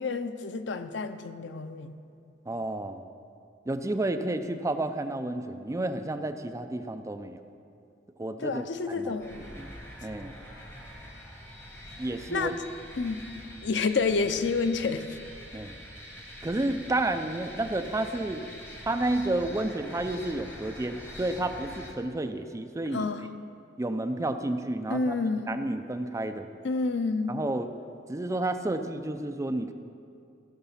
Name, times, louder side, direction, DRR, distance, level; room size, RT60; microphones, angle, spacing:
voice 1, 0.0-1.9 8.4-9.4 12.3-12.6 13.0-13.2 13.6-15.0 22.9-23.2 24.9-25.5 26.6-27.4, left 4 dB, 75° left, 10 dB, 0.6 m, -29 dB
voice 2, 2.5-3.0 3.7-7.4 8.2-9.2 9.5-9.7 10.0-10.3 12.0-12.6 15.5-15.8 16.4-18.4 18.9-23.1 23.8-25.2 25.5-26.5 27.3-27.7 28.1-29.7, right 2 dB, 15° right, 8 dB, 0.5 m, -31 dB
sound 1, 9.2-21.9, equal, 15° left, 1.5 m, -45 dB
16.5 x 5.8 x 5.6 m, 2.5 s
head